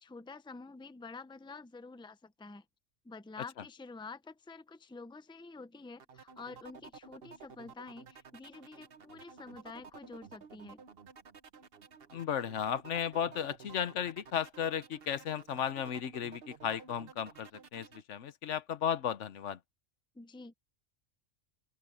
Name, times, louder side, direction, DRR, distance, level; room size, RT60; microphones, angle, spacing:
voice 1, 0.0-2.6 3.0-10.8 20.1-20.5, left 4 dB, 5° left, 0.6 m, -48 dB
sound 1, 6.0-18.0, right 5 dB, 55° right, 1.2 m, -53 dB
voice 2, 12.1-19.6, left 8 dB, 80° left, 1.2 m, -35 dB
open air
omnidirectional pair, 1.2 m